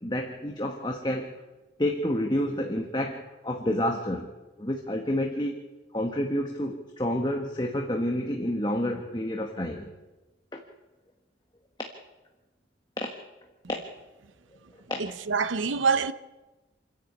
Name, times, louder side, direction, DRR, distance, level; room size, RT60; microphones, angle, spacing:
voice 1, 0.0-1.3 1.8-4.3 4.6-5.7 5.9-9.9 10.5-10.6 13.0-13.1 13.7-13.8 14.9-15.0, left 1 dB, 25° left, 1.4 m, -29 dB
voice 2, 15.0-16.1, right 5 dB, 85° right, 0.7 m, -25 dB
28.0 x 11.0 x 8.5 m
head